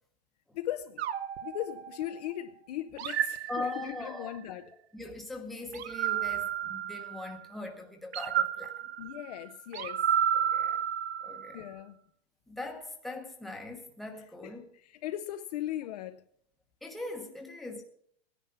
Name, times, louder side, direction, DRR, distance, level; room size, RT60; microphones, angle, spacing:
voice 1, 0.5-1.0 1.4-4.7 9.0-10.0 11.5-12.0 14.4-16.2, left 13 dB, 40° left, 0.6 m, -38 dB
sound 1, 1.0-2.3 3.0-4.3 5.7-7.5 8.1-11.6, right 9 dB, 85° right, 1.0 m, -32 dB
voice 2, 3.5-4.4 4.9-8.7 10.3-10.8 11.2-11.7 12.5-14.7 16.8-17.8, left 2 dB, ahead, 1.0 m, -40 dB
16.5 x 10.0 x 5.7 m
supercardioid pair, 175°, 31 cm